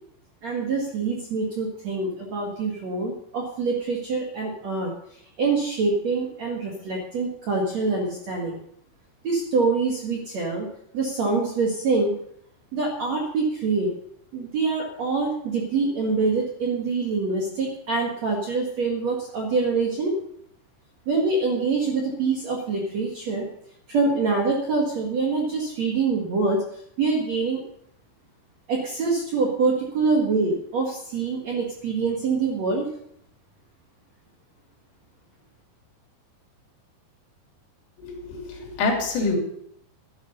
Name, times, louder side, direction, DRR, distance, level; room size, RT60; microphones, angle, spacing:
voice 1, 0.4-4.9 5.4-8.6 9.2-10.7 10.9-12.1 12.7-13.9 14.3-20.1 21.1-23.5 23.9-26.6 27.0-27.6 28.7-32.9, right 4 dB, 55° right, -1 dB, 2.1 m, -25 dB
voice 2, 38.0-39.4, left 3 dB, 80° left, 0 dB, 5.7 m, -26 dB
13.0 x 10.5 x 5.5 m, 0.70 s
omnidirectional pair, 5.7 m